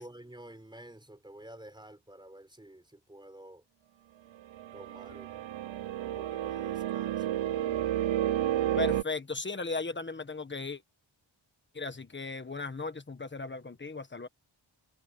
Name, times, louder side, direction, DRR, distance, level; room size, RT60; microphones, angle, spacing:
voice 1, 0.0-3.6 4.7-5.4 6.0-7.3, right 1 dB, 10° right, 3.8 m, -50 dB
sound 1, 4.5-9.0, right 12 dB, 65° right, 0.7 m, -31 dB
voice 2, 8.7-10.8 11.7-14.3, left 3 dB, 20° left, 1.4 m, -36 dB
wide cardioid pair, 165°, 49 cm